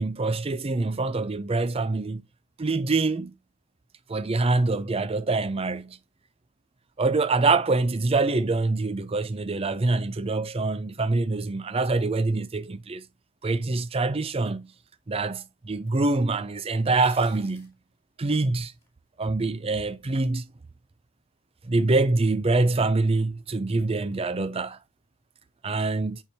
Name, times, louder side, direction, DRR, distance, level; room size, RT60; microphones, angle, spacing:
voice 1, 0.0-2.2 2.6-3.3 4.1-6.0 7.0-13.0 13.4-14.7 15.1-17.7 18.2-18.7 19.2-20.4 21.6-24.8 25.6-26.2, right 3 dB, 25° right, 0.5 m, -25 dB
sound 1, 14.7-14.8 15.9-16.0 16.8-17.7 18.3-18.9, left 2 dB, 15° left, 3.6 m, -53 dB
8.8 x 4.6 x 2.7 m
head